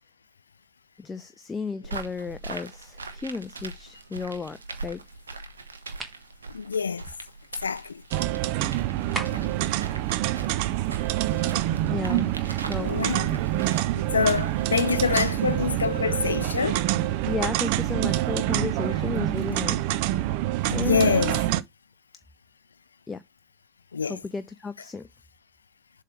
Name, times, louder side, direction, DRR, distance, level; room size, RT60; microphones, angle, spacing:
voice 1, 1.0-5.0 11.9-12.3 12.7-12.9 17.2-20.0 20.7-21.4 23.1-23.2 24.0-25.1, left 4 dB, 15° left, 0.4 m, -33 dB
sound 1, 1.8-15.8, right 3 dB, 70° right, 1.1 m, -42 dB
sound 2, 6.0-6.3 9.1-9.6, right 3 dB, 15° right, 1.3 m, -34 dB
voice 2, 6.5-7.0 7.6-8.0 9.1-9.3 12.7-13.4 13.9-16.9 20.7-21.4 23.9-24.2, left 5 dB, 75° left, 0.4 m, -26 dB
sound 3, 8.1-21.6, right 14 dB, 45° right, 0.4 m, -26 dB
7.4 x 3.2 x 5.0 m
figure-of-eight pair, 90°, 0 cm